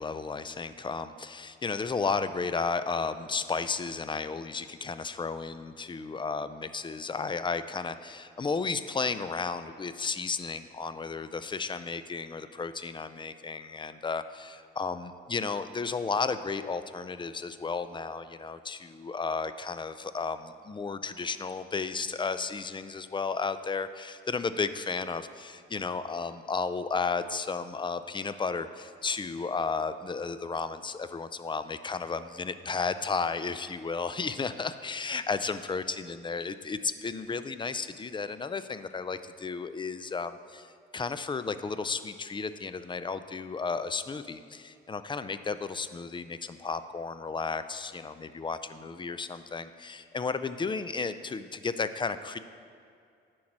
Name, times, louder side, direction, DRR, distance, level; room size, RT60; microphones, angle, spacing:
voice 1, 0.0-52.4, left 4 dB, 25° left, 12 dB, 0.5 m, -33 dB
10.5 x 4.7 x 7.4 m, 2.3 s
cardioid pair, 90°, 20 cm